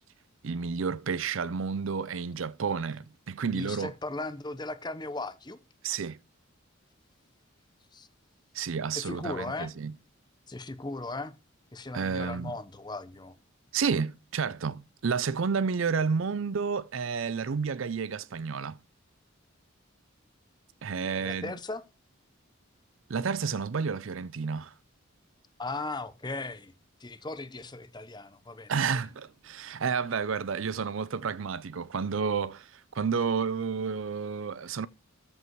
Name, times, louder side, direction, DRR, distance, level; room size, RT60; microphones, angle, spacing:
voice 1, 0.4-3.9 5.8-6.2 8.5-9.9 11.9-12.6 13.7-18.8 20.8-21.5 23.1-24.7 28.7-34.9, right 5 dB, 70° right, 0.5 m, -30 dB
voice 2, 3.5-5.6 7.9-8.1 8.9-9.7 10.5-11.3 11.7-13.3 20.9-21.8 25.6-26.7 27.0-29.2, left 2 dB, 20° left, 0.8 m, -38 dB
13.5 x 5.4 x 4.7 m
head